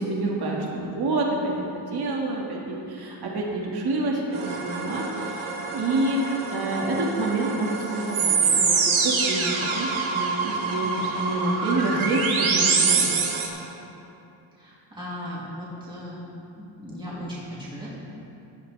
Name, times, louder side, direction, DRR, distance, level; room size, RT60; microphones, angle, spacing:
voice 1, 0.0-13.1, right 2 dB, 50° right, -2 dB, 1.9 m, -28 dB
sound 1, 4.3-13.5, right 5 dB, 80° right, 1.7 m, -25 dB
voice 2, 14.6-16.2 16.5-18.0, equal, 10° right, -8 dB, 2.9 m, -37 dB
17.0 x 11.5 x 3.3 m, 2.8 s
cardioid pair, 135°, 47 cm